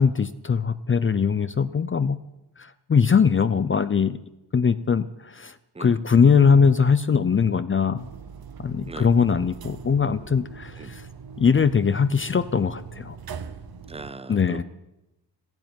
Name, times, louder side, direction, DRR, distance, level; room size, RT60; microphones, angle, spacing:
voice 1, 0.0-2.2 2.6-4.2 4.5-5.5 5.8-8.1 8.6-11.0 11.4-13.2 14.3-14.6, left 6 dB, 30° left, 13 dB, 0.5 m, -21 dB
voice 2, 5.7-6.3 8.9-9.1 10.8-10.9 13.9-14.6, right 3 dB, 15° right, 15 dB, 0.6 m, -39 dB
sound 1, 8.0-14.1, right 6 dB, 60° right, 1.1 m, -41 dB
14.5 x 10.5 x 9.2 m, 0.93 s
wide cardioid pair, 130°, 41 cm